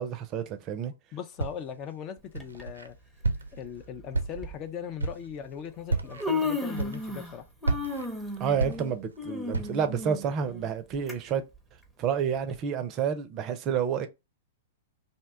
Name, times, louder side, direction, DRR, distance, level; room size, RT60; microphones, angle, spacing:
voice 1, 0.0-0.9 8.4-11.4 12.0-14.1, right 7 dB, 35° right, 0.5 m, -29 dB
voice 2, 1.1-3.0 3.5-7.4, left 8 dB, 35° left, 0.4 m, -39 dB
Walk footsteps, 1.4-1.8 2.3-2.9 3.2-3.7 4.1-4.6 5.0-5.3 5.8-6.3 6.7-7.3 7.6-9.2 9.5-9.9, right 3 dB, 85° right, 0.5 m, -31 dB
Human voice, 2.4-2.6 3.7-3.8 4.4-4.5 5.6-5.7 5.9-7.4 7.6-11.1 11.5-11.6 12.5-12.6, left 3 dB, ahead, 0.7 m, -33 dB
2.7 x 2.2 x 3.6 m
hypercardioid pair, 110°, 0 cm